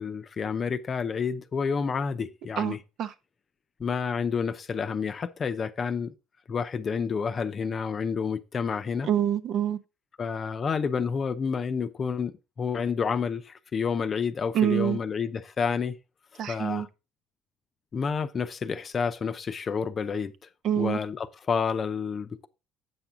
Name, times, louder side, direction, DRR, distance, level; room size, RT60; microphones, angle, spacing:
voice 1, 0.0-2.8 3.8-6.1 6.5-9.1 10.2-16.0 16.5-16.9 17.9-20.3 20.8-22.5, left 6 dB, 40° left, 0.7 m, -29 dB
voice 2, 2.6-3.1 9.0-9.8 14.5-15.0 16.4-16.9 20.6-21.0, right 9 dB, 60° right, 0.8 m, -26 dB
7.8 x 6.0 x 3.7 m
supercardioid pair, 95°, 0 cm